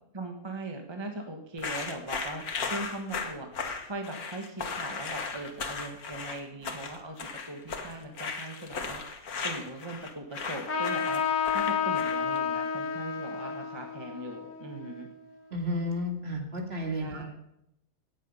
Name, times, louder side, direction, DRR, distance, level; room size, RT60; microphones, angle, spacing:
voice 1, 0.1-9.0 9.4-15.1 17.0-17.3, right 2 dB, 20° right, 3 dB, 1.3 m, -40 dB
sound 1, 1.6-12.4, left 5 dB, 85° left, 1.9 m, -36 dB
Trumpet, 10.7-15.7, left 7 dB, 60° left, 1.9 m, -31 dB
voice 2, 15.5-17.3, left 1 dB, 45° right, 1 dB, 2.5 m, -32 dB
18.0 x 8.0 x 5.5 m, 0.81 s
omnidirectional pair, 1.5 m